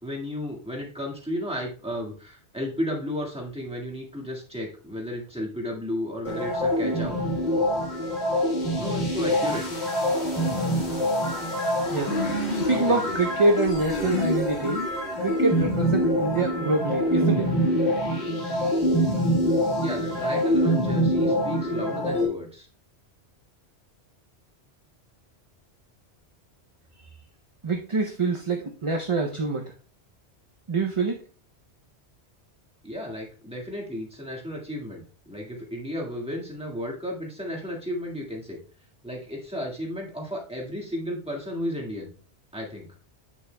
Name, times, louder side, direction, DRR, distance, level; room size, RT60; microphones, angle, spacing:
voice 1, 0.0-7.2 8.8-9.6 12.7-12.9 19.8-22.7 32.8-38.6 39.0-42.1 42.5-42.9, left 1 dB, 5° right, -2 dB, 1.7 m, -33 dB
sound 1, 6.2-22.2, equal, 70° left, 2.1 m, -25 dB
voice 2, 11.9-14.9 15.2-17.5 27.6-29.7 30.7-31.2, right 3 dB, 35° right, 3 dB, 0.6 m, -26 dB
8.5 x 6.9 x 2.2 m, 0.39 s
omnidirectional pair, 1.1 m